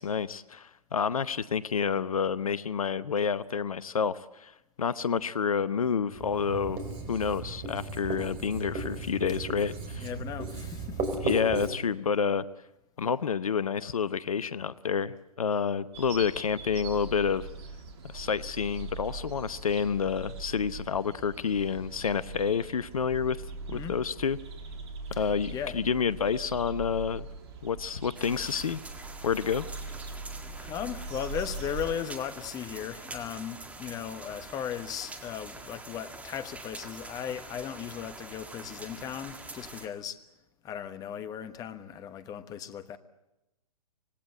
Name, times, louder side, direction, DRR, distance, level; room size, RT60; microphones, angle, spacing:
voice 1, 0.0-4.5 4.8-6.8 7.1-10.1 11.2-12.4 13.0-17.5 18.1-23.4 23.7-24.4 25.2-27.3 27.6-28.8 29.2-29.7, left 6 dB, 65° left, 0.8 m, -29 dB
Writing, 6.1-11.7, right 3 dB, 30° right, 4.2 m, -35 dB
voice 2, 10.0-11.1 23.7-24.0 25.1-25.8 30.5-40.2 40.6-43.0, left 9 dB, 20° left, 1.3 m, -37 dB
sound 1, 15.9-32.0, right 3 dB, 45° right, 2.7 m, -41 dB
sound 2, 28.1-39.9, right 2 dB, 5° right, 1.9 m, -45 dB
26.0 x 19.0 x 7.8 m
figure-of-eight pair, 120°, 19 cm